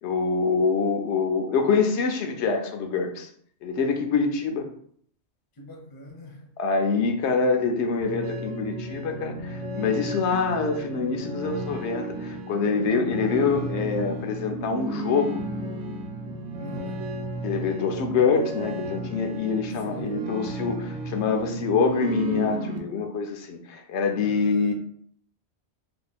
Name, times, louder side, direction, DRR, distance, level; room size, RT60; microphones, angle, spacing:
voice 1, 0.0-3.3 3.6-4.7 6.6-15.4 17.4-24.7, left 5 dB, 85° left, 0.9 m, -25 dB
voice 2, 5.6-6.5 16.6-17.0 19.8-20.3 24.1-24.7, equal, 30° left, 0.5 m, -43 dB
sound 1, 8.0-22.8, right 1 dB, 80° right, 0.9 m, -33 dB
2.7 x 2.2 x 4.0 m
omnidirectional pair, 1.1 m